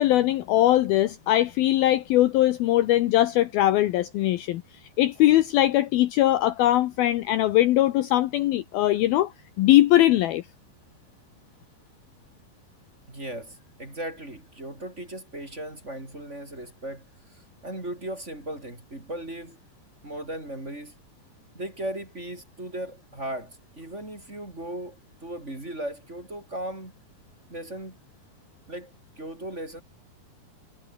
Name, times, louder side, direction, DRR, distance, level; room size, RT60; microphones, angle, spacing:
voice 1, 0.0-4.6 5.0-9.3 9.6-10.5, left 14 dB, 75° left, 2.5 m, -21 dB
voice 2, 13.1-19.6 20.0-21.0 21.5-26.9 27.5-28.0 28.7-29.8, right 1 dB, 15° right, 4.5 m, -37 dB
omnidirectional pair, 5.0 m